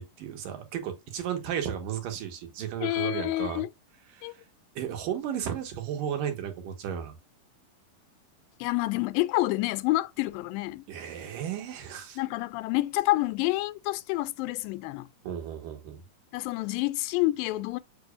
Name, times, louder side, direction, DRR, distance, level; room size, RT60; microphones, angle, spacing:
voice 1, 0.0-3.6 4.1-4.3 4.8-7.1 10.9-12.2 15.2-16.0, right 9 dB, 75° right, 3.0 m, -34 dB
voice 2, 2.8-3.7 4.2-4.3 8.6-10.8 12.2-15.1 16.3-17.8, left 18 dB, 90° left, 2.3 m, -28 dB
6.9 x 6.1 x 2.5 m
omnidirectional pair, 4.0 m